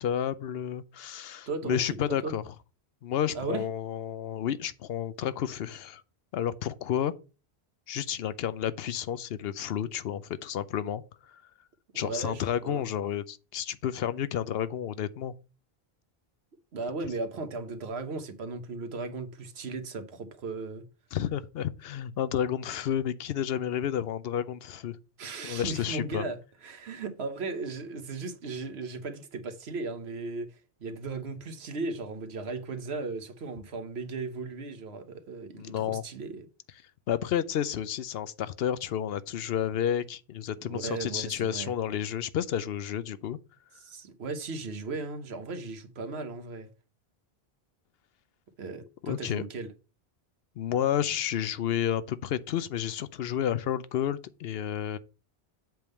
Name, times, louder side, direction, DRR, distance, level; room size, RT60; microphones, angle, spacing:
voice 1, 0.0-2.4 3.0-6.0 6.3-7.1 7.9-11.0 11.9-15.3 21.1-25.0 25.4-26.3 35.5-36.0 37.1-43.4 49.0-49.4 50.6-55.0, left 9 dB, 75° left, 0.8 m, -31 dB
voice 2, 1.5-1.8 2.1-2.3 3.3-3.7 12.0-12.9 16.7-20.8 25.2-36.5 40.6-41.7 43.8-46.7 48.6-49.7, right 3 dB, 85° right, 1.3 m, -36 dB
7.5 x 3.6 x 6.5 m
omnidirectional pair, 1.0 m